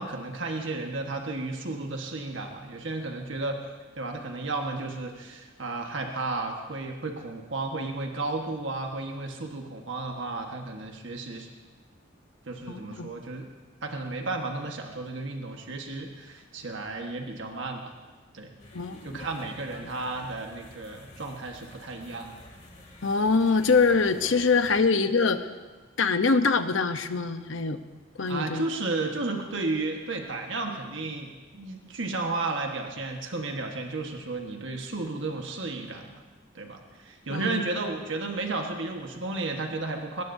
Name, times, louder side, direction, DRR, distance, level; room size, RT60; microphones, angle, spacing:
voice 1, 0.0-3.6 3.9-11.5 12.4-13.5 13.8-18.0 18.3-18.5 19.0-22.3 28.3-36.2 36.5-40.2, right 3 dB, 70° right, 2 dB, 1.4 m, -33 dB
voice 2, 12.7-13.1 18.7-19.1 19.8-19.9 23.0-25.4 26.0-27.8 28.2-28.6 37.3-37.7, left 4 dB, 75° left, 9 dB, 0.9 m, -24 dB
sound 1, 18.6-24.8, left 1 dB, 35° left, 2.7 m, -48 dB
22.0 x 19.5 x 2.7 m, 1.3 s
head